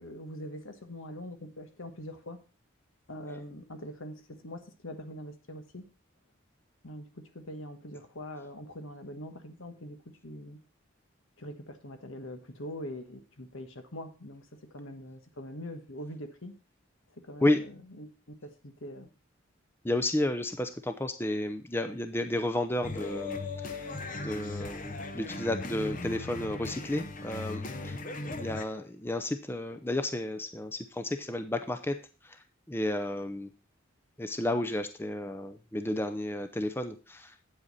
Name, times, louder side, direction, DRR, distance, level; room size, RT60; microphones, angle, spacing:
voice 1, 0.0-2.4 3.1-5.9 6.8-10.6 11.4-14.5 14.7-16.6 17.3-18.1 18.4-19.1 27.8-27.9, equal, 75° left, 7 dB, 1.4 m, -43 dB
voice 2, 19.8-23.9 24.2-28.0 28.3-32.0 32.2-32.4 32.7-33.5 34.2-37.3, left 1 dB, 10° left, 8 dB, 0.6 m, -32 dB
sound 1, 22.8-28.6, left 2 dB, 40° left, 0.8 m, -38 dB
8.8 x 8.0 x 4.1 m, 0.35 s
head